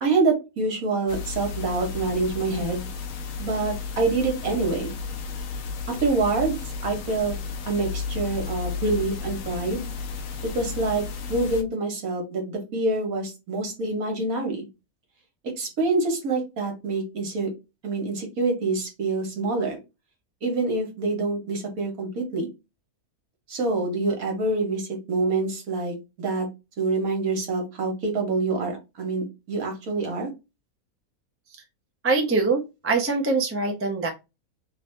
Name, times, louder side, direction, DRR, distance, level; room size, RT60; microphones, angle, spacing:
voice 1, 0.0-2.9 3.4-5.0 5.9-7.3 7.7-9.9 10.5-11.0 11.3-14.7 15.6-17.5 17.8-19.8 20.4-22.5 23.5-26.5 26.8-30.3, right 3 dB, 65° right, 2 dB, 1.6 m, -26 dB
sound 1, 1.1-11.6, left 5 dB, 65° left, 1.0 m, -33 dB
voice 2, 32.0-34.1, right 3 dB, 20° right, 1 dB, 0.4 m, -23 dB
3.2 x 2.7 x 3.2 m, 0.25 s
omnidirectional pair, 1.6 m